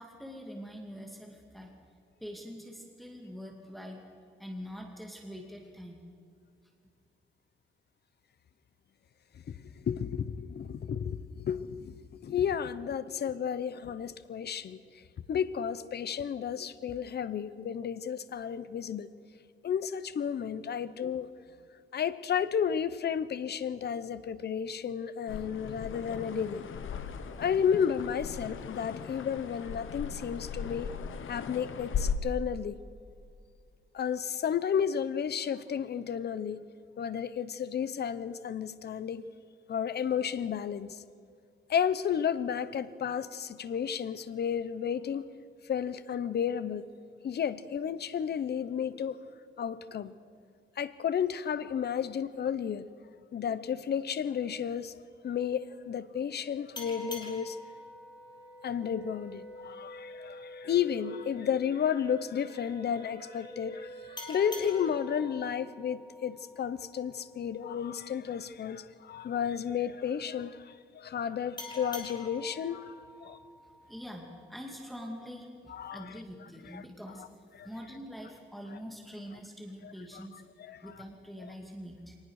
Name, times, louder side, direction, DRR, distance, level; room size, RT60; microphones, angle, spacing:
voice 1, 0.0-1.7 2.2-4.0 4.4-6.0 73.9-77.2 77.6-80.4 80.8-82.2, equal, ahead, 1 dB, 2.4 m, -44 dB
voice 2, 9.9-15.0 15.3-19.1 19.6-21.3 21.9-26.6 27.4-30.9 31.3-32.8 33.9-36.6 37.0-39.3 39.7-41.0 41.7-45.2 45.6-46.9 47.2-49.2 49.6-50.1 50.8-52.9 53.3-57.6 58.6-72.9 73.2-73.4 75.7-76.2 76.7-76.8 77.2-77.3 77.6-77.7 79.8-80.9, left 8 dB, 50° left, 14 dB, 0.8 m, -32 dB
sound 1, 25.3-32.1, left 7 dB, 75° left, 1.3 m, -38 dB
sound 2, 55.1-65.0, left 1 dB, 30° right, 4.7 m, -50 dB
sound 3, 56.7-60.0 64.2-67.4 71.6-74.5, left 3 dB, 20° left, 3.1 m, -47 dB
23.5 x 19.5 x 6.5 m, 2.3 s
wide cardioid pair, 160°, 21 cm